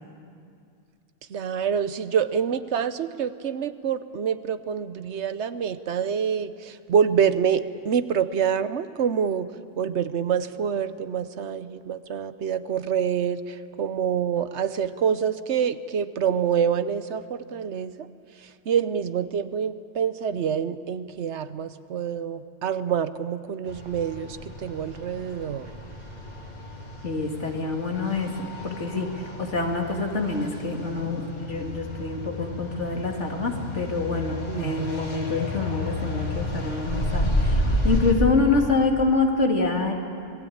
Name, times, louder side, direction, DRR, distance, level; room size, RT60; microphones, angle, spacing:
voice 1, 1.3-9.5 9.8-18.1 18.7-25.6 34.5-34.9, right 7 dB, 70° right, 13 dB, 1.1 m, -26 dB
sound 1, 23.7-38.1, left 1 dB, 35° left, 3.0 m, -31 dB
voice 2, 27.0-29.1 29.4-39.9, left 3 dB, 75° left, 2 dB, 2.8 m, -26 dB
26.5 x 20.0 x 8.7 m, 2.4 s
omnidirectional pair, 1.2 m